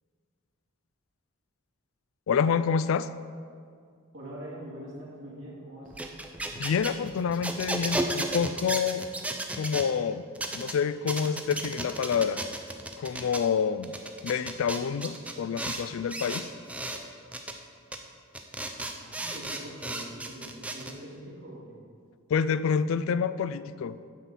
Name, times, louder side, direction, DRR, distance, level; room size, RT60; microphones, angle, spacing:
voice 1, 2.3-3.1 6.6-9.0 9.5-10.2 10.5-12.4 13.0-13.9 14.2-16.5 22.3-24.0, left 6 dB, 75° left, 14 dB, 0.3 m, -27 dB
voice 2, 4.1-6.2 18.9-21.8, right 1 dB, 65° right, -6 dB, 2.0 m, -43 dB
sound 1, 5.9-9.9 10.4-10.7 11.1-13.4 13.8-15.8 16.1-17.0 17.3-17.5 17.9-18.0 18.3-20.9, right 1 dB, 5° right, 0.4 m, -34 dB
9.0 x 4.1 x 7.3 m, 2.2 s
head